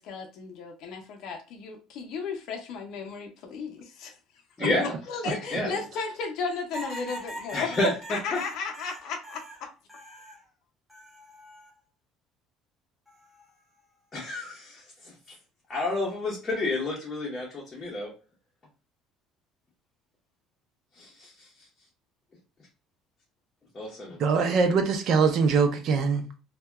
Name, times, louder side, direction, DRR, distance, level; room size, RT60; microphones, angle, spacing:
voice 1, 0.0-4.1 4.8-7.8 8.1-9.7, left 5 dB, 60° left, 0.5 m, -35 dB
voice 2, 4.6-4.9 5.3-5.8 7.5-8.4 14.1-15.1 15.7-18.1 20.9-21.7 23.7-24.2, left 2 dB, 20° left, 0.8 m, -30 dB
sound 1, 6.7-10.4 10.9-11.7 13.1-13.5, right 1 dB, 5° right, 0.8 m, -43 dB
voice 3, 24.2-26.2, right 5 dB, 50° right, 0.5 m, -22 dB
2.7 x 2.2 x 2.2 m
cardioid pair, 150°, 0 cm